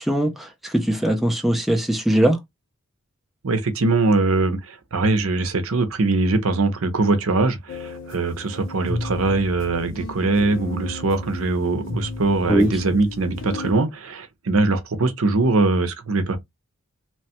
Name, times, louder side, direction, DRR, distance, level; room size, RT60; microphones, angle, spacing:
voice 1, 0.0-2.4 12.5-12.7, right 1 dB, ahead, 0.4 m, -20 dB
voice 2, 3.4-16.4, right 3 dB, 70° right, 0.7 m, -22 dB
sound 1, 7.7-13.7, left 3 dB, 55° left, 0.6 m, -34 dB
3.1 x 2.2 x 2.8 m
head